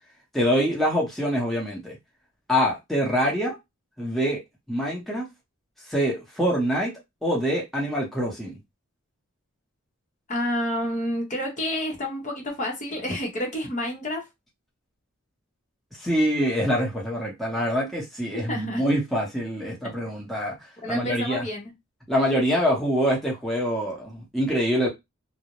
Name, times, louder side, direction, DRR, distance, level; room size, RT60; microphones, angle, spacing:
voice 1, 0.3-2.0 2.5-3.6 4.0-4.4 4.7-5.3 5.8-8.6 16.0-21.4 22.1-24.9, equal, ahead, 0.8 m, -25 dB
voice 2, 10.3-14.3 18.5-18.8 20.8-21.7, left 1 dB, 35° left, 0.8 m, -29 dB
2.4 x 2.0 x 2.9 m
head